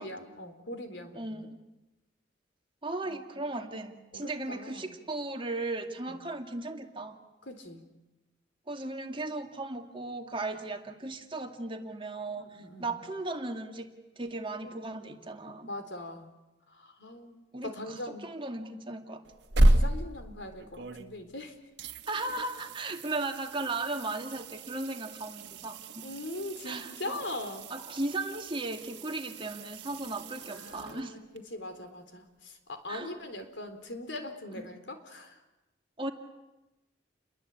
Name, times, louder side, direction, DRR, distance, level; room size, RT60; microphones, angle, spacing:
voice 1, 0.0-1.5 3.0-3.2 4.1-4.9 6.1-6.2 7.5-7.9 12.4-13.0 14.6-14.7 15.2-15.3 15.6-16.3 16.8-18.3 19.7-21.5 26.0-27.7 30.4-35.3, left 1 dB, 75° left, 7 dB, 3.9 m, -41 dB
voice 2, 1.1-1.6 2.8-7.2 8.7-13.9 14.2-15.7 17.5-19.2 22.1-26.1 26.6-27.2 27.7-31.2 32.9-33.1 34.6-34.7 36.0-36.1, right 2 dB, 30° right, 4 dB, 2.2 m, -36 dB
sound 1, 19.2-21.4 21.8-31.4 34.2-34.3, right 1 dB, 65° right, 1.6 m, -32 dB
29.5 x 22.0 x 8.5 m, 0.99 s
head